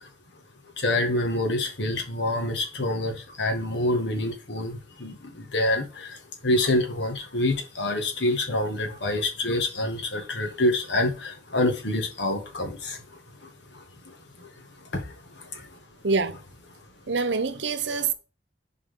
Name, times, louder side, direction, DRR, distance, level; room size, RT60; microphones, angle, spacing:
voice 1, 0.8-6.1 6.4-13.0 14.9-15.0, left 1 dB, 65° left, 2.0 m, -26 dB
voice 2, 16.0-16.4 17.1-18.1, right 4 dB, 70° right, 0.8 m, -25 dB
11.0 x 4.9 x 3.7 m
head